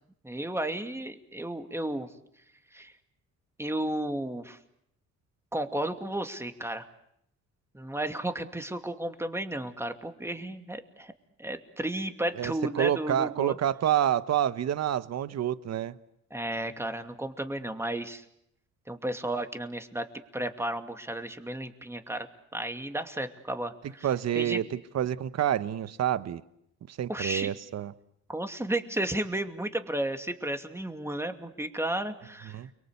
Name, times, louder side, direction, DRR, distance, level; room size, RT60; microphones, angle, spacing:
voice 1, 0.2-2.1 2.7-2.9 3.6-4.6 5.5-6.9 7.7-11.1 11.4-13.6 16.3-18.2 18.9-20.1 20.3-24.1 24.3-24.6 27.1-27.5 28.3-32.6, right 1 dB, 10° right, 7 dB, 2.6 m, -33 dB
voice 2, 12.3-15.9 24.0-26.4 26.9-27.9 32.5-32.7, right 10 dB, 60° right, 14 dB, 1.1 m, -28 dB
30.0 x 23.0 x 8.2 m, 0.74 s
cardioid pair, 90°, 30 cm